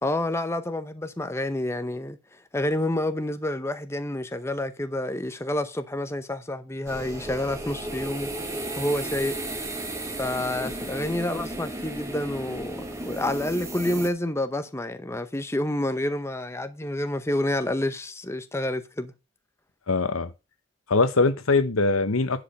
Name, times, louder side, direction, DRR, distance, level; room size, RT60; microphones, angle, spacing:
voice 1, 0.0-2.2 2.5-8.3 8.8-9.4 10.2-19.1, left 1 dB, 10° left, 0.7 m, -28 dB
sound 1, 6.9-14.1, right 1 dB, 15° right, 1.6 m, -34 dB
voice 2, 19.9-20.3 20.9-22.4, left 3 dB, 85° left, 1.0 m, -22 dB
10.5 x 5.0 x 5.3 m
head